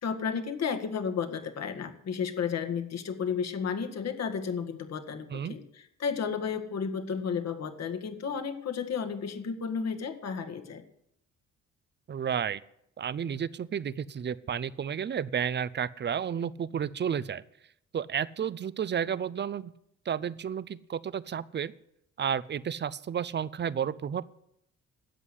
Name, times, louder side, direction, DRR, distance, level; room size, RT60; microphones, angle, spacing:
voice 1, 0.0-5.6 6.0-10.8, left 6 dB, 60° left, 7 dB, 1.9 m, -32 dB
voice 2, 12.1-12.6 13.0-17.4 17.9-19.7 20.1-21.7 22.2-24.3, right 8 dB, 35° right, 19 dB, 0.6 m, -32 dB
13.0 x 8.2 x 9.9 m, 0.77 s
cardioid pair, 90°, 30 cm